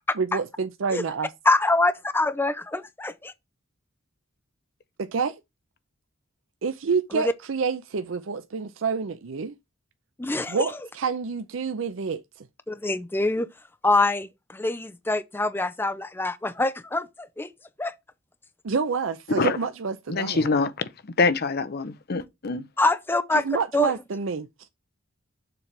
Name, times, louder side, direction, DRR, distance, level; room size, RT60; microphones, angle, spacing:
voice 1, 0.2-1.3 5.0-5.4 6.6-9.5 10.5-12.5 18.6-20.5 23.3-24.7, right 5 dB, 75° right, 0.5 m, -28 dB
voice 2, 1.5-3.3 7.1-7.3 10.2-10.7 12.7-13.5 13.8-17.5 17.8-17.9 22.8-23.4 23.7-23.9, left 2 dB, 10° left, 0.4 m, -25 dB
voice 3, 20.1-20.9 21.2-22.6, left 4 dB, 50° left, 0.7 m, -25 dB
6.9 x 3.3 x 5.7 m
head